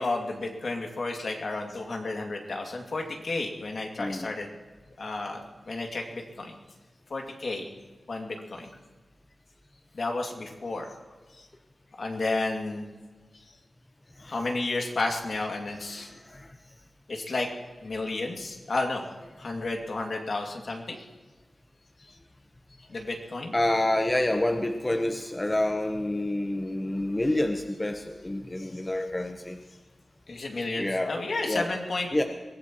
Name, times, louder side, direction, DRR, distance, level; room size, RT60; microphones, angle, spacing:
voice 1, 0.0-4.5 5.0-6.5 7.1-7.7 8.1-8.7 9.9-10.9 12.0-12.9 14.2-16.1 17.1-17.5 17.8-19.0 19.4-21.0 22.9-23.5 30.3-32.1, left 2 dB, 60° left, 1 dB, 2.4 m, -32 dB
voice 2, 4.0-4.3 14.2-14.4 15.9-16.5 23.5-29.6 30.8-31.1 31.4-31.7 32.1-32.2, left 1 dB, 20° left, 4 dB, 1.0 m, -28 dB
23.0 x 17.0 x 3.1 m, 1.3 s
wide cardioid pair, 80°, 0 cm